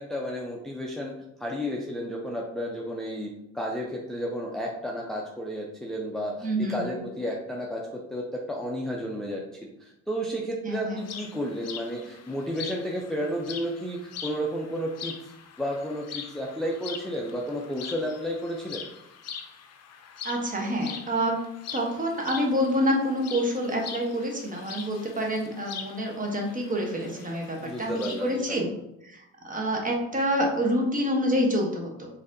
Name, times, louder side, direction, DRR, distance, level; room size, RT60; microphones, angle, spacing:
voice 1, 0.0-15.3 15.6-18.8 27.6-28.6, equal, ahead, -1 dB, 0.4 m, -32 dB
voice 2, 6.4-7.0 10.6-11.0 20.2-21.4 21.7-28.7 29.0-32.1, equal, 25° right, 0 dB, 0.9 m, -27 dB
sound 1, 11.0-28.4, left 7 dB, 60° left, 0.5 m, -42 dB
3.9 x 2.7 x 2.6 m, 0.84 s
cardioid pair, 90°, 30 cm